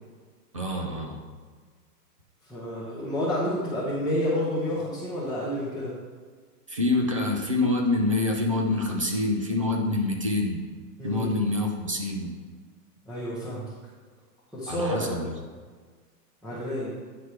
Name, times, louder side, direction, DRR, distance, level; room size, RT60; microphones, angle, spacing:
voice 1, 0.5-1.2 6.7-10.6 11.0-12.3 14.7-15.3, left 2 dB, 25° right, 0 dB, 0.3 m, -26 dB
voice 2, 2.4-5.9 11.0-11.3 13.1-13.7 14.5-15.2 16.4-16.9, left 1 dB, ahead, -11 dB, 0.7 m, -29 dB
9.4 x 3.3 x 5.7 m, 1.5 s
hypercardioid pair, 155°, 49 cm